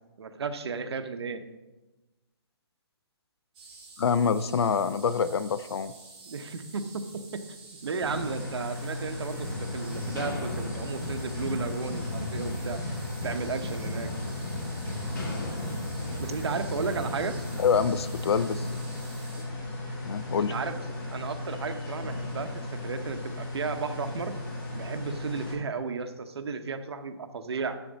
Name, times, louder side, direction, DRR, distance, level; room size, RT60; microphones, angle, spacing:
voice 1, 0.2-1.4 6.2-7.4 7.8-12.8 13.2-14.1 16.2-17.3 20.4-20.9 21.1-24.3 24.7-27.8, right 5 dB, 70° right, 8 dB, 0.8 m, -34 dB
sound 1, 3.5-19.4, right 3 dB, 15° right, 1.7 m, -49 dB
voice 2, 4.0-5.9 17.6-18.7 19.4-19.5 20.1-20.5, left 6 dB, 70° left, 15 dB, 0.4 m, -26 dB
sound 2, 8.0-25.5, left 2 dB, 15° left, 0.9 m, -36 dB
sound 3, 9.4-24.7, left 1 dB, 45° left, 1.7 m, -39 dB
7.1 x 7.0 x 4.0 m, 1.1 s
hypercardioid pair, 175°, 14 cm